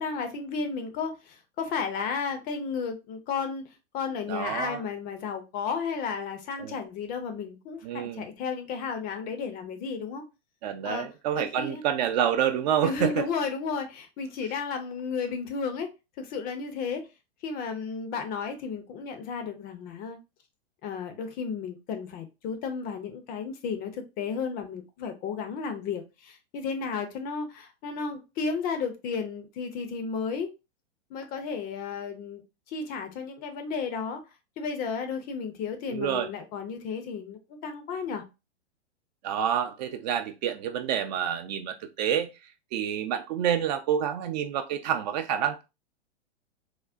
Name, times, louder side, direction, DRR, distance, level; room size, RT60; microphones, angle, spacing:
voice 1, 0.0-3.6 3.9-10.2 10.8-11.1 11.4-11.8 12.8-15.9 16.2-17.1 17.4-20.2 20.8-30.5 31.1-32.4 32.7-34.2 34.6-38.2, left 5 dB, 25° left, 0.5 m, -33 dB
voice 2, 4.3-4.8 6.6-6.7 7.8-8.2 10.6-13.1 35.9-36.3 39.2-42.3 42.7-45.6, right 9 dB, 40° right, 0.4 m, -28 dB
3.5 x 2.0 x 2.4 m
hypercardioid pair, 115°, 34 cm